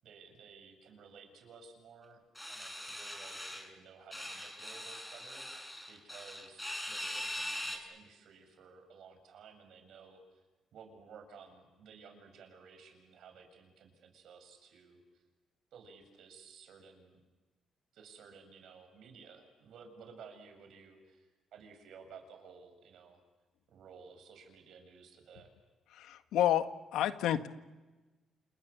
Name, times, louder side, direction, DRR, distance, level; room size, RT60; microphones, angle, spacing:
voice 1, 0.0-10.4 10.7-15.2 15.7-17.2 17.9-23.2 23.7-25.5, right 5 dB, 70° right, 6 dB, 7.4 m, -55 dB
sound 1, 2.4-3.7 4.1-7.8, left 1 dB, 5° left, 6.4 m, -41 dB
voice 2, 25.9-27.5, left 11 dB, 85° left, 9 dB, 1.6 m, -30 dB
29.0 x 29.0 x 7.1 m, 1.2 s
cardioid pair, 90°, 0 cm